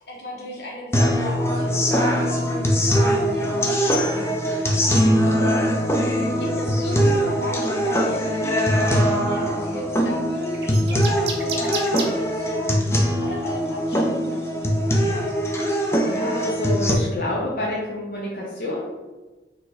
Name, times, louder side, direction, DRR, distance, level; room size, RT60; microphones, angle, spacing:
voice 1, 0.1-5.5 5.8-6.0 6.4-15.4, left 1 dB, 75° left, -3 dB, 1.3 m, -36 dB
sound 1, 0.9-16.9, equal, 15° left, 0.4 m, -22 dB
sound 2, 10.5-12.1 13.3-13.5 14.1-15.3, right 5 dB, 70° right, 0.6 m, -31 dB
voice 2, 16.1-18.9, left 1 dB, 50° left, -5 dB, 0.7 m, -28 dB
4.3 x 2.7 x 4.1 m, 1.2 s
head